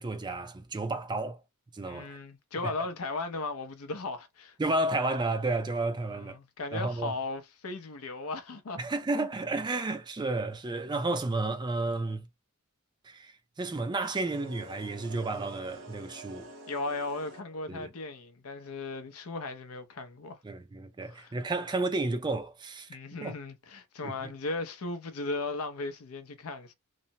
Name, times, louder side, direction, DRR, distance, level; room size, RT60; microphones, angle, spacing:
voice 1, 0.0-1.4 1.7-2.2 2.6-2.7 4.6-6.4 6.7-7.1 8.8-12.3 13.0-16.5 17.7-17.9 20.4-22.9 23.2-23.3 24.0-24.3, right 2 dB, 20° right, 0.4 m, -32 dB
voice 2, 1.9-4.6 6.1-8.8 9.1-9.3 16.7-20.4 21.1-21.3 22.9-26.7, left 3 dB, 75° left, 0.6 m, -37 dB
sound 1, 14.3-17.8, right 1 dB, 60° right, 0.8 m, -48 dB
3.1 x 2.0 x 2.6 m
head